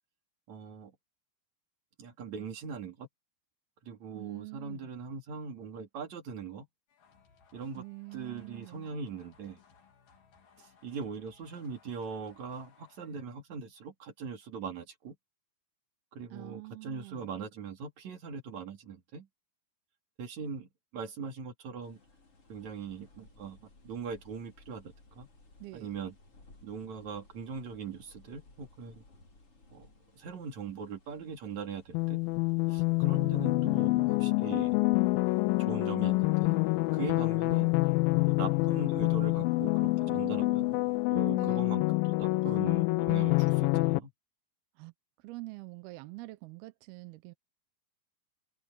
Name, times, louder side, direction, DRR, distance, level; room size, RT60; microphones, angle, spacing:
voice 1, 0.5-0.9 2.0-3.1 3.8-6.7 7.5-7.8 8.1-9.6 10.8-15.2 16.1-19.3 20.2-22.0 22.5-25.3 25.7-26.2 26.6-29.0 29.7-29.9 30.2-32.2 32.7-34.8 35.6-36.6 36.9-37.7 38.3-40.7 41.1-44.1, right 5 dB, 50° right, 3.7 m, -41 dB
voice 2, 4.1-4.9 7.8-8.9 16.3-17.4 25.6-25.9 33.2-33.8 40.0-40.8 41.4-41.6 44.8-44.9 45.2-47.3, right 23 dB, 80° right, 2.7 m, -45 dB
sound 1, 6.9-13.4, left 6 dB, 60° left, 4.9 m, -63 dB
sound 2, 21.8-41.1, left 2 dB, 35° left, 5.9 m, -61 dB
sound 3, 31.9-44.0, left 24 dB, 85° left, 2.0 m, -27 dB
omnidirectional pair, 4.6 m